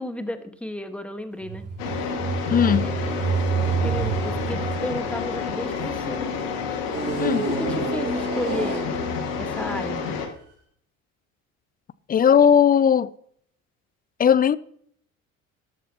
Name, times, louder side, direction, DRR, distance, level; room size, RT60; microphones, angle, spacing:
voice 1, 0.0-1.7 2.8-3.0 3.8-6.3 7.4-8.9 9.4-10.1, left 1 dB, 5° left, 1.6 m, -32 dB
sound 1, 1.4-6.1 6.9-9.4 10.1-10.2, right 5 dB, 35° right, 4.6 m, -28 dB
sound 2, 1.8-10.3, left 5 dB, 70° left, 2.2 m, -29 dB
voice 2, 2.5-2.9 7.2-7.5 12.1-13.1 14.2-14.6, left 8 dB, 20° left, 0.5 m, -17 dB
13.0 x 12.0 x 3.0 m
hypercardioid pair, 60°, 41 cm